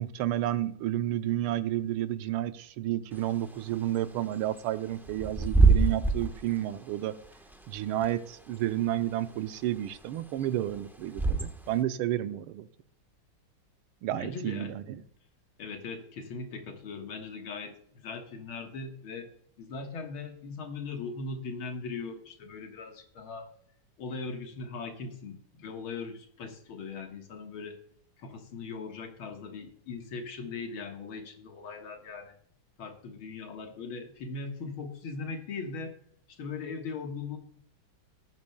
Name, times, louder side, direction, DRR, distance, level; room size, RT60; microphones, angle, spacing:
voice 1, 0.0-7.1 7.7-12.7 14.0-15.0, right 13 dB, 90° right, 11 dB, 1.6 m, -31 dB
Bird / Wind, 3.1-11.8, right 4 dB, 5° right, 0.3 m, -28 dB
voice 2, 14.1-14.7 15.6-19.3 19.6-23.5 24.0-27.8 28.2-32.4 32.8-36.0 36.3-37.4, left 4 dB, 75° left, 4 dB, 2.2 m, -39 dB
19.0 x 9.7 x 2.2 m, 0.62 s
omnidirectional pair, 2.3 m